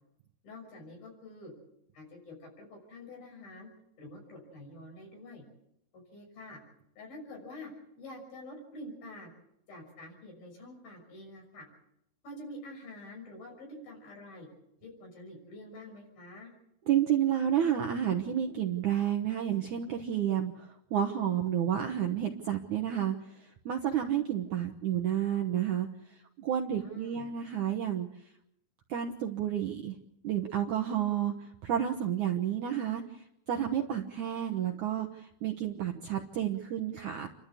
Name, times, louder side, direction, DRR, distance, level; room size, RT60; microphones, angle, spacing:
voice 1, 0.4-1.5 1.9-3.7 4.0-5.4 6.1-6.6 7.0-7.7 8.0-9.3 9.7-11.7 12.2-14.5 14.8-16.5 26.8-27.3, left 1 dB, 60° left, 2 dB, 8.0 m, -47 dB
voice 2, 16.9-25.9 26.4-28.1 28.9-30.0 30.2-37.3, right 10 dB, 70° right, 3 dB, 2.0 m, -30 dB
29.5 x 13.0 x 8.3 m, 0.80 s
omnidirectional pair, 4.8 m